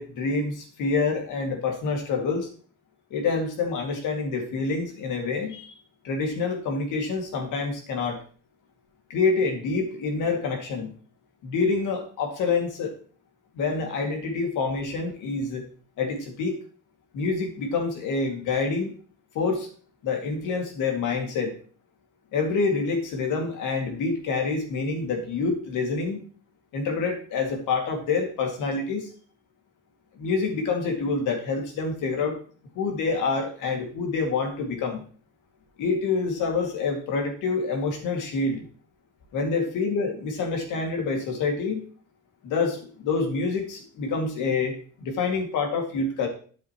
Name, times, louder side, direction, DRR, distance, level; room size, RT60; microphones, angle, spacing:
voice 1, 0.0-2.5 3.1-5.7 6.0-8.2 9.1-10.9 11.4-12.9 13.6-15.6 16.0-16.6 17.1-18.9 19.3-19.7 20.0-21.5 22.3-26.2 26.7-29.1 30.2-32.4 32.8-35.0 35.8-38.6 39.3-41.8 42.4-46.3, left 4 dB, 90° left, 3 dB, 2.3 m, -27 dB
9.2 x 8.0 x 3.0 m, 0.42 s
cardioid pair, 90°, 30 cm